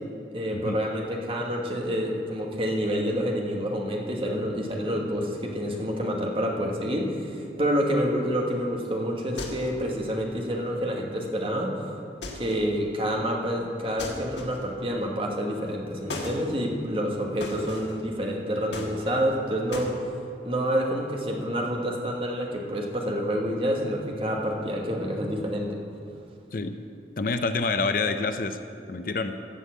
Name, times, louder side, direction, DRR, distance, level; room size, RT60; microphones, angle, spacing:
voice 1, 0.3-11.8 12.3-20.0 20.4-25.8, equal, 30° right, 0 dB, 1.4 m, -28 dB
sound 1, 9.4-9.9 12.2-12.7 14.0-14.8 16.1-16.4 17.4-18.0 18.7-19.3 19.7-19.9, left 2 dB, 90° left, 1.6 m, -37 dB
voice 2, 27.2-28.6 28.9-29.4, left 3 dB, 50° left, 9 dB, 0.6 m, -27 dB
14.0 x 5.5 x 8.4 m, 2.6 s
head